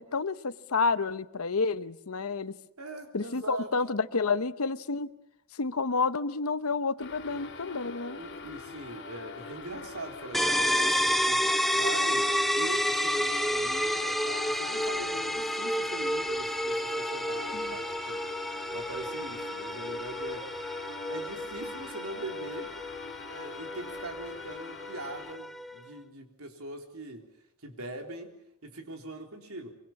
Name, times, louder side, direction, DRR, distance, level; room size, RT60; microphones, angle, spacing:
voice 1, 0.0-2.6 3.1-5.1 5.5-8.2 17.5-17.7, left 4 dB, 75° left, 14 dB, 0.9 m, -30 dB
voice 2, 2.8-3.7 7.3-7.4 8.2-11.5 11.8-12.3 12.6-18.2 18.7-20.5 21.1-22.7 23.3-27.3 27.6-28.3 28.6-29.8, right 2 dB, 75° right, 4 dB, 3.7 m, -42 dB
sound 1, 7.0-25.4, left 4 dB, 55° left, 2.9 m, -44 dB
sound 2, 10.3-25.9, equal, ahead, 0.9 m, -30 dB
24.5 x 24.0 x 7.3 m, 0.77 s
head